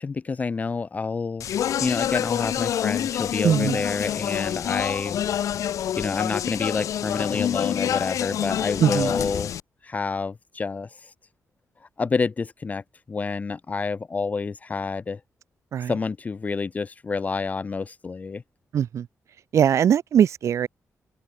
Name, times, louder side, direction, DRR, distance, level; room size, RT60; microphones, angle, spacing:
voice 1, 0.0-1.5 1.8-5.2 6.0-9.5 9.8-10.9 12.0-15.2 15.9-18.4, left 4 dB, 25° left, 0.6 m, -28 dB
Speech, 1.4-9.6, left 10 dB, 70° left, 0.5 m, -27 dB
voice 2, 3.4-3.8 8.8-9.1 15.7-15.9 18.7-19.1 19.5-20.7, right 9 dB, 60° right, 0.8 m, -20 dB
open air
wide cardioid pair, 160°, 6 cm